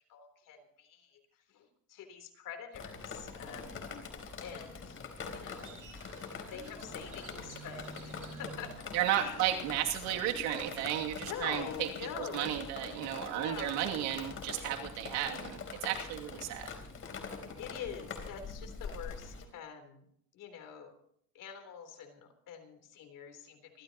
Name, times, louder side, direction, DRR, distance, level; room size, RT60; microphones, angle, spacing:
voice 1, 0.1-1.2 1.5-3.8 4.4-5.0 5.3-5.8 6.5-8.9 9.2-9.7 11.2-12.5 13.3-13.8 17.6-20.0 20.3-20.9 21.3-23.8, left 7 dB, 50° left, 5 dB, 3.7 m, -45 dB
Drip, 2.7-19.4, left 5 dB, 35° left, 3.8 m, -44 dB
Crow, 5.5-11.8, right 5 dB, 50° right, 6.8 m, -53 dB
voice 2, 8.9-11.9 12.3-16.7, right 12 dB, 80° right, 2 dB, 2.7 m, -33 dB
27.0 x 14.0 x 3.0 m, 0.66 s
cardioid pair, 130°, 40 cm